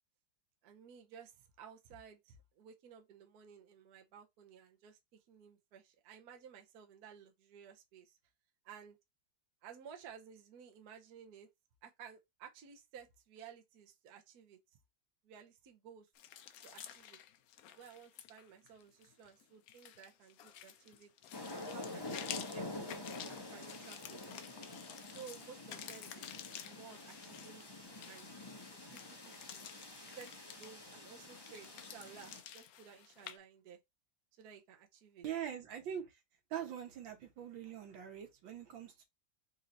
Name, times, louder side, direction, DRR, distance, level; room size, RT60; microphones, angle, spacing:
voice 1, 0.6-8.2 8.6-9.0 9.6-11.5 11.8-14.6 15.2-16.1 16.6-17.2 17.7-21.1 21.7-22.7 23.2-24.7 25.1-27.7 28.0-28.3 28.7-29.7 30.1-33.8 34.4-35.2, right 7 dB, 60° right, 1.2 m, -55 dB
sound 1, 16.2-33.4, left 10 dB, 70° left, 0.8 m, -51 dB
sound 2, 21.3-32.4, left 2 dB, 20° left, 0.6 m, -48 dB
voice 2, 35.2-36.2 36.5-39.0, right 9 dB, 80° right, 1.8 m, -43 dB
4.2 x 2.8 x 3.8 m
omnidirectional pair, 2.1 m